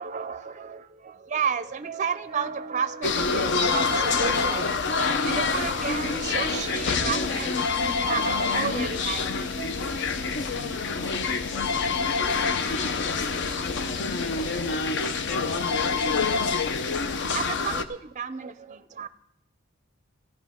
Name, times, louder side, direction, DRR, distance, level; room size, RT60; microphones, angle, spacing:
voice 1, 0.0-9.7 16.1-16.9 17.3-19.1, right 6 dB, 35° right, 0.5 m, -32 dB
sound 1, 3.0-17.8, left 4 dB, 60° left, 0.7 m, -26 dB
voice 2, 10.5-15.2, right 1 dB, 30° left, 3.7 m, -47 dB
15.5 x 13.0 x 3.6 m
head